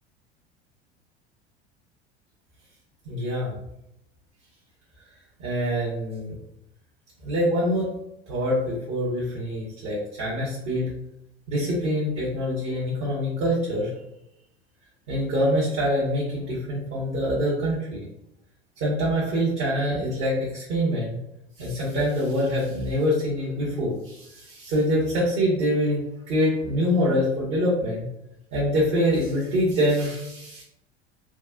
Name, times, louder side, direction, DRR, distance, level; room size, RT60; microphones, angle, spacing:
voice 1, 3.0-3.5 5.4-6.3 7.2-7.9 8.3-10.9 11.5-13.9 15.1-18.1 18.8-21.2 21.6-26.0 26.3-28.1 28.5-30.6, equal, 55° right, -6 dB, 1.4 m, -25 dB
4.4 x 2.4 x 2.4 m, 0.83 s
hypercardioid pair, 75°, 32 cm